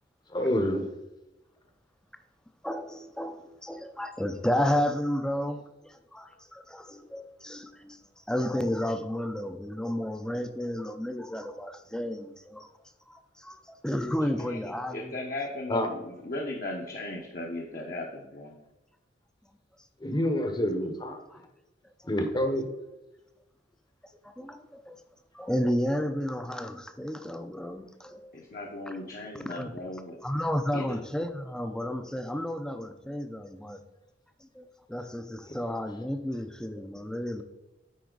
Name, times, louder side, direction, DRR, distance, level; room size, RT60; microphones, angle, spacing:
voice 1, 0.3-0.9 15.7-15.9 20.0-21.2 22.0-22.7, left 1 dB, 25° left, 6 dB, 0.8 m, -27 dB
voice 2, 2.6-5.6 6.1-8.0 8.3-12.7 13.1-15.1 21.3-21.4 24.2-25.0 25.3-28.3 29.6-29.7 30.2-33.8 34.4-37.4, left 1 dB, 5° left, 8 dB, 0.5 m, -32 dB
voice 3, 14.2-14.6 14.9-18.6 28.3-30.2 30.7-31.0, left 2 dB, 50° left, -1 dB, 1.0 m, -37 dB
9.5 x 4.3 x 3.9 m, 1.0 s
head